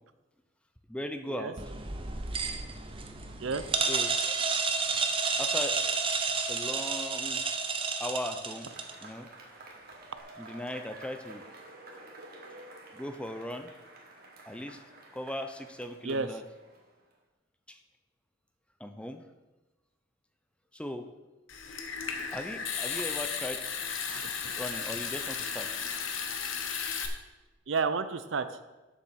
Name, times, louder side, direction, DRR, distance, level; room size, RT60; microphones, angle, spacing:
voice 1, 0.9-1.6 3.9-4.3 5.4-5.8 6.5-7.4 8.0-8.7 9.0-9.3 10.4-11.4 12.9-13.7 14.5-14.8 15.1-16.4 17.7-17.8 18.8-19.2 20.7-21.1 22.3-23.6 24.6-25.7, left 1 dB, 5° left, 7 dB, 0.5 m, -38 dB
sound 1, 1.6-9.0, right 4 dB, 25° right, 0.7 m, -31 dB
Cheering / Applause / Crowd, 8.4-17.1, right 2 dB, 50° right, 1.7 m, -50 dB
Water tap faucet / Sink (filling or washing) / Trickle dribble, 21.5-27.1, left 6 dB, 80° left, 1.0 m, -35 dB
voice 2, 24.1-24.6 27.7-28.5, right 4 dB, 70° right, 12 dB, 0.6 m, -31 dB
7.4 x 6.8 x 6.3 m, 1.1 s
head